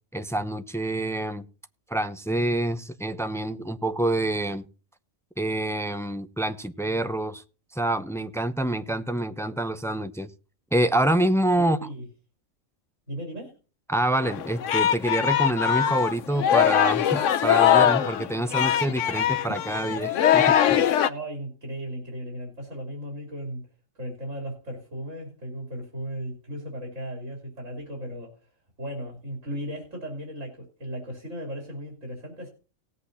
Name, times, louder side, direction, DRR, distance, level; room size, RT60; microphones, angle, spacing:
voice 1, 0.1-1.4 1.9-4.6 5.4-7.4 7.7-10.3 10.7-11.8 13.9-20.9, right 1 dB, 5° left, 0.3 m, -27 dB
voice 2, 11.6-12.1 13.1-13.5 21.0-23.6 24.0-28.5 28.8-32.5, equal, 80° right, 3.6 m, -36 dB
Singing, 14.2-21.1, left 10 dB, 75° left, 1.1 m, -22 dB
18.5 x 8.2 x 2.8 m
omnidirectional pair, 1.3 m